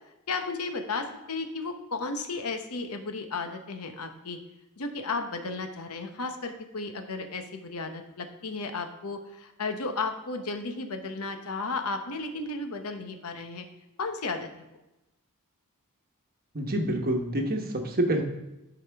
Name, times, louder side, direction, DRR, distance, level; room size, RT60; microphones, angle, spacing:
voice 1, 0.3-4.4 4.8-13.6 14.0-14.5, left 3 dB, 75° left, 6 dB, 0.9 m, -34 dB
voice 2, 16.5-18.2, right 1 dB, 45° right, 3 dB, 1.1 m, -27 dB
11.0 x 4.9 x 3.5 m, 0.94 s
head